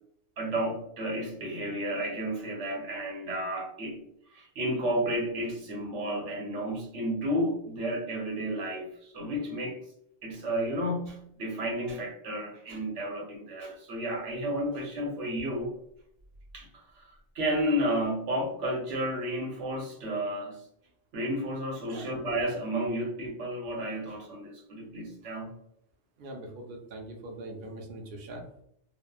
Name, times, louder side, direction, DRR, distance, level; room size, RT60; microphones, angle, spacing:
voice 1, 0.4-4.0 4.3-9.8 10.2-15.7 16.5-16.7 17.0-20.6 21.1-25.5, equal, 80° right, -1 dB, 1.1 m, -32 dB
voice 2, 26.2-28.6, right 1 dB, 55° right, 1 dB, 0.6 m, -42 dB
3.0 x 2.1 x 2.3 m, 0.72 s
omnidirectional pair, 1.2 m